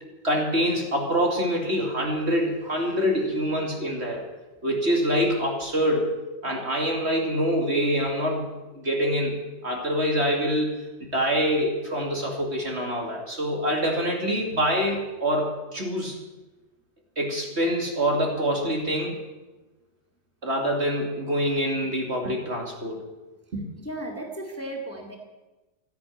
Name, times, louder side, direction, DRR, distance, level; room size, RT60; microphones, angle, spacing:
voice 1, 0.2-4.2 4.6-6.1 6.4-8.5 8.7-9.4 9.6-10.7 11.1-16.1 17.2-19.2 20.4-23.0 23.5-23.6, equal, 40° right, 1 dB, 2.7 m, -25 dB
voice 2, 23.8-25.2, right 1 dB, 10° left, 2 dB, 2.1 m, -35 dB
14.0 x 10.5 x 9.2 m, 1.1 s
omnidirectional pair, 1.8 m